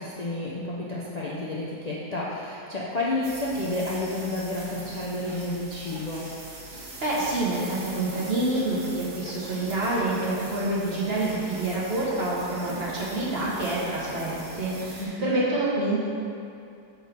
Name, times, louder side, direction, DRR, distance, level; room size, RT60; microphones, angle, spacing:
voice 1, 0.0-6.3 15.0-15.4, left 2 dB, 75° left, -6 dB, 0.3 m, -30 dB
sound 1, 3.2-15.1, right 2 dB, 65° right, 1.9 m, -41 dB
voice 2, 6.7-16.0, right 2 dB, 40° right, -7 dB, 1.5 m, -27 dB
6.5 x 4.7 x 5.2 m, 2.5 s
omnidirectional pair, 1.8 m